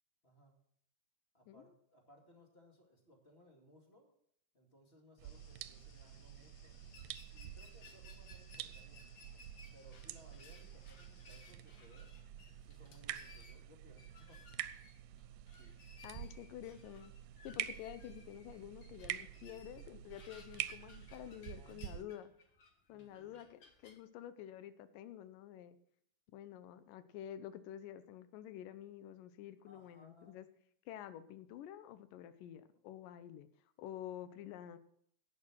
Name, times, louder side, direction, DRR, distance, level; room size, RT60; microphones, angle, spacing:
voice 1, 0.2-0.6 1.3-4.1 4.5-9.0 9.7-12.1 12.6-14.5 15.5-15.7 17.3-17.7 21.5-22.3 22.9-23.4 29.6-30.5, equal, 20° left, 2 dB, 2.0 m, -64 dB
sound 1, 5.2-11.5, left 8 dB, 70° left, 2.3 m, -68 dB
sound 2, 5.2-22.0, right 12 dB, 85° right, 2.2 m, -48 dB
sound 3, 6.9-24.0, left 3 dB, 50° left, 1.5 m, -61 dB
voice 2, 16.0-17.1 17.4-22.3 22.9-25.8 26.3-30.5 30.9-33.5 33.8-34.8, left 11 dB, 85° left, 13 dB, 2.4 m, -49 dB
11.0 x 8.8 x 6.0 m, 0.65 s
omnidirectional pair, 3.8 m